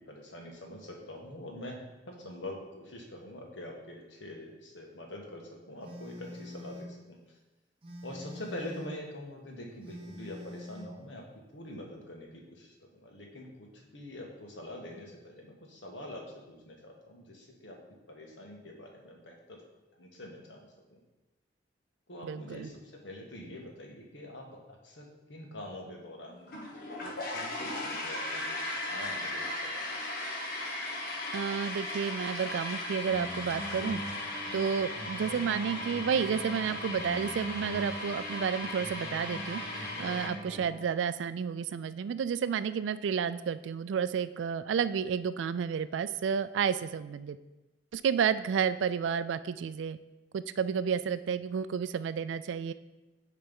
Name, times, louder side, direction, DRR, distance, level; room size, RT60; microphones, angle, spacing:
voice 1, 0.0-1.8 2.1-7.4 8.0-11.2 11.5-17.8 18.1-19.6 20.0-20.7 22.1-26.6 27.0-29.9 40.5-40.8, left 1 dB, 70° left, 0 dB, 1.4 m, -45 dB
Telephone, 5.8-7.0 7.8-9.0 9.8-11.0, left 1 dB, 30° right, 1.1 m, -45 dB
voice 2, 22.2-22.7 31.3-34.0 34.5-47.4 47.9-50.0 50.3-52.7, right 7 dB, 75° right, 14 dB, 0.3 m, -31 dB
sound 1, 26.5-40.3, left 1 dB, 55° left, 1.4 m, -37 dB
sound 2, 33.0-41.0, equal, ahead, 2.4 m, -43 dB
8.7 x 3.4 x 5.4 m, 1.1 s
head